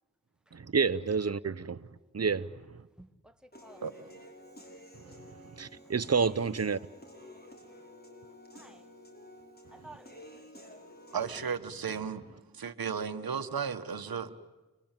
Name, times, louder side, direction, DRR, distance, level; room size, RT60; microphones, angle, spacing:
voice 1, 0.5-1.8 2.1-2.8 5.0-6.8, right 5 dB, 45° right, 1.0 m, -30 dB
voice 2, 3.0-3.8 5.8-5.9 8.5-8.9 9.7-10.5, right 2 dB, ahead, 2.0 m, -54 dB
Human voice / Piano, 3.5-11.5, left 1 dB, 25° left, 6.3 m, -51 dB
voice 3, 11.1-12.2 12.5-14.4, right 6 dB, 80° right, 1.3 m, -34 dB
30.0 x 22.0 x 9.0 m
cardioid pair, 45°, 36 cm